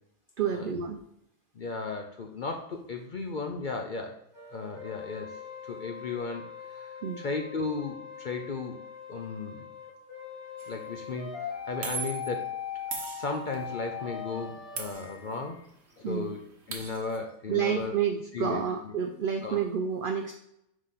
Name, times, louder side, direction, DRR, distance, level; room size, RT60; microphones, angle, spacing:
voice 1, 0.4-1.0 7.0-7.2 16.0-16.3 17.5-20.3, right 8 dB, 80° right, 6 dB, 0.4 m, -29 dB
voice 2, 1.6-4.2 4.5-5.4 5.6-6.4 6.7-8.8 9.1-9.7 10.7-11.3 11.7-12.5 13.1-15.6 16.0-16.4 16.7-17.9 18.3-18.9 19.4-19.6, left 4 dB, 55° left, 3 dB, 0.5 m, -35 dB
sound 1, 4.3-14.9, left 7 dB, 20° left, 1.9 m, -41 dB
sound 2, 10.6-10.8 11.8-12.4 12.9-13.7 14.8-15.6 15.9-16.0 16.3-17.2, right 4 dB, 55° right, 1.3 m, -39 dB
5.0 x 3.9 x 5.6 m, 0.78 s
omnidirectional pair, 1.4 m